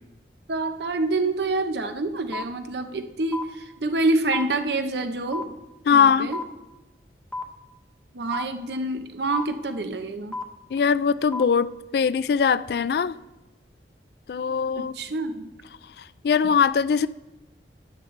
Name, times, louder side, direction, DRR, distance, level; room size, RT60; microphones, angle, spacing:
voice 1, 0.5-5.6 5.9-6.4 8.1-10.4 14.8-15.5, right 2 dB, 75° right, 0.8 m, -27 dB
sound 1, 2.3-2.4 3.3-3.4 4.3-4.4 5.3-5.4 6.3-6.4 7.3-7.4 8.3-8.4 9.3-9.4 10.3-10.4 11.3-11.4, left 3 dB, 5° left, 0.8 m, -30 dB
voice 2, 5.9-6.3 10.7-13.2 14.3-14.9 16.0-17.1, left 6 dB, 65° left, 0.3 m, -21 dB
12.5 x 10.0 x 3.3 m
head